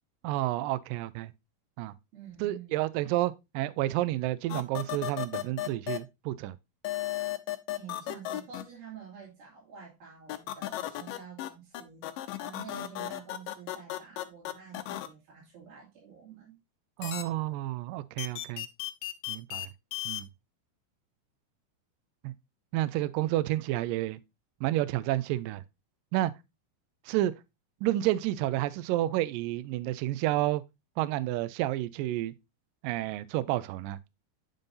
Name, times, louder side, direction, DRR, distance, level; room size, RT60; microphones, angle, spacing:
voice 1, 0.2-1.3 1.8-1.9 2.4-6.6 17.0-18.7 19.3-19.7 20.1-20.3 22.2-22.3 22.7-24.2 24.6-25.6 26.1-26.3 27.1-27.3 27.8-30.6 31.0-32.3 32.8-34.0, right 15 dB, 90° right, 1.9 m, -30 dB
voice 2, 2.1-3.1 7.8-16.6, right 7 dB, 70° right, 4.5 m, -49 dB
sound 1, 4.5-6.0 6.8-8.6 10.3-11.5 11.7-15.1 17.0-17.2 18.2-19.7 19.9-20.2, left 14 dB, 80° left, 2.0 m, -34 dB
9.0 x 5.5 x 2.7 m
omnidirectional pair, 4.5 m